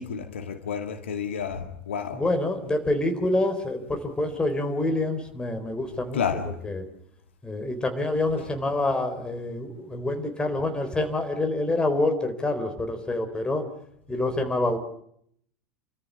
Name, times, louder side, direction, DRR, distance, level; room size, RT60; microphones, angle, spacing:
voice 1, 0.0-2.2 6.1-6.6, left 6 dB, 70° left, 6 dB, 2.2 m, -30 dB
voice 2, 2.1-6.2 6.6-6.8 7.4-13.6 14.1-14.8, left 2 dB, 15° left, 5 dB, 4.1 m, -27 dB
29.0 x 14.0 x 9.9 m, 0.71 s
figure-of-eight pair, 85°, 7 cm